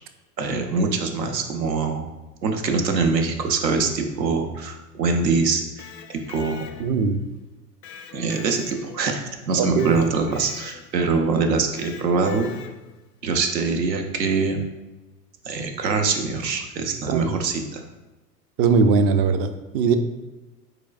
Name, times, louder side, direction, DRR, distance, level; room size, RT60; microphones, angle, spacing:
voice 1, 0.4-2.1 2.4-6.7 8.1-12.5 13.2-14.6 15.4-17.8, right 4 dB, 85° right, 5 dB, 0.8 m, -24 dB
Electric guitar, 5.6-7.1 7.8-9.2 9.8-11.1 11.8-13.0, left 7 dB, 85° left, 0.6 m, -43 dB
voice 2, 6.8-7.2 9.6-9.9 17.1-17.3 18.6-20.0, right 5 dB, 35° right, 9 dB, 0.4 m, -20 dB
4.8 x 4.2 x 2.5 m, 1.1 s
hypercardioid pair, 90°, 49 cm